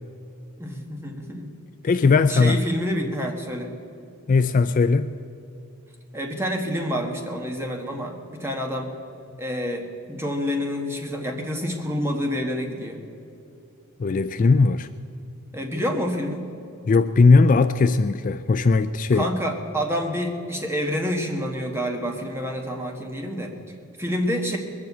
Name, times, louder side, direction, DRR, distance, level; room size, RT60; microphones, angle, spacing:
voice 1, 0.6-1.5 2.3-3.7 6.1-8.9 9.4-13.0 15.5-16.5 19.1-23.5 24.0-24.6, equal, 10° right, 2 dB, 1.5 m, -28 dB
voice 2, 1.8-2.6 4.3-5.1 14.0-14.9 16.9-19.3, left 4 dB, 35° left, 11 dB, 0.3 m, -18 dB
21.0 x 7.4 x 8.1 m, 2.8 s
head